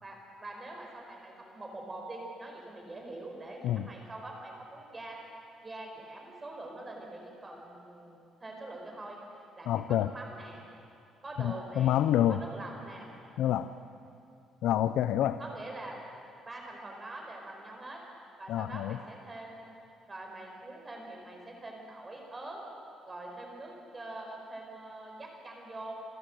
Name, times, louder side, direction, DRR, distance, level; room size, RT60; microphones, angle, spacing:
voice 1, 0.0-5.2 5.6-10.6 11.2-12.0 12.3-13.1 15.4-16.0 16.5-18.0 18.4-19.7 20.1-22.6 23.1-25.9, right 2 dB, 20° right, 1 dB, 4.8 m, -44 dB
voice 2, 9.7-10.1 11.4-12.4 13.4-13.7 14.6-15.4 18.5-19.0, left 11 dB, 75° left, 12 dB, 0.6 m, -27 dB
27.5 x 13.0 x 7.9 m, 2.6 s
cardioid pair, 120°, 0 cm